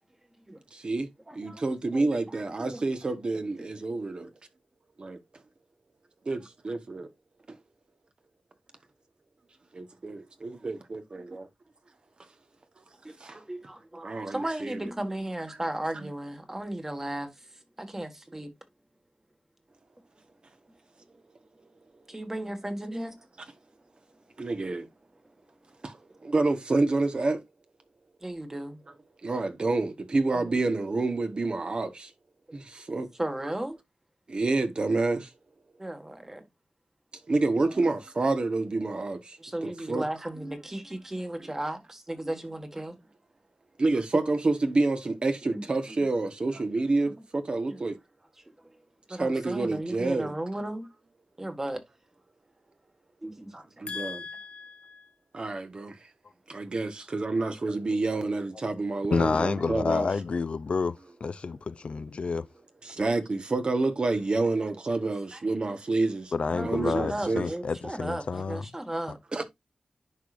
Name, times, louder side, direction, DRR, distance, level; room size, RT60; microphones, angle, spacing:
voice 1, 0.7-1.1 1.3-4.3 5.0-5.2 6.2-7.1 7.5-7.6 9.7-11.5 13.2-13.4 14.0-14.8 16.0-16.1 24.4-24.9 25.8-26.0 26.2-27.4 29.2-32.1 32.5-33.1 34.3-35.3 37.3-40.1 43.8-48.0 49.2-50.3 53.8-54.2 55.3-56.0 56.5-60.1 62.8-66.3 66.6-67.5 69.3-69.4, right 3 dB, 50° right, 1.1 m, -28 dB
voice 2, 1.3-2.8 3.3-3.7 13.0-18.5 22.1-23.1 28.2-28.8 30.3-30.6 32.5-32.6 33.2-33.8 35.8-36.5 37.5-37.9 39.4-43.0 45.5-46.1 46.5-46.9 47.7-47.8 49.1-50.9 51.4-51.8 53.2-53.9 57.4-57.5 58.1-58.2 62.9-63.1 65.3-65.4 66.5-69.2, right 1 dB, 20° right, 1.6 m, -36 dB
voice 3, 53.9-55.1 59.1-62.5 66.3-68.6, left 4 dB, 60° left, 0.4 m, -30 dB
10.5 x 4.8 x 2.5 m
wide cardioid pair, 90°, 2 cm